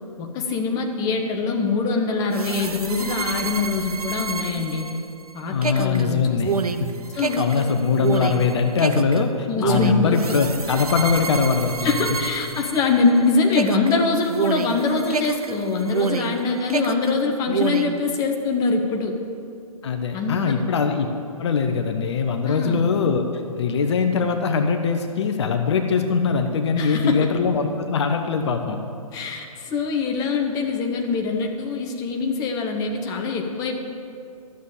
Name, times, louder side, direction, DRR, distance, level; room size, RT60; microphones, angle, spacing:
voice 1, 0.2-4.8 5.3-6.3 7.1-7.5 9.5-10.4 11.8-19.1 20.1-20.6 22.4-22.8 26.8-27.3 29.1-33.8, left 4 dB, 20° left, 3 dB, 1.0 m, -23 dB
sound 1, 2.3-13.2 13.5-16.4 16.7-18.0, right 5 dB, 90° right, 0.6 m, -28 dB
voice 2, 5.5-6.5 6.8-6.9 7.4-12.0 19.8-21.1 21.4-23.2 23.6-28.8, left 5 dB, 50° left, 5 dB, 0.9 m, -22 dB
12.5 x 7.1 x 6.6 m, 2.5 s
figure-of-eight pair, 130°, 19 cm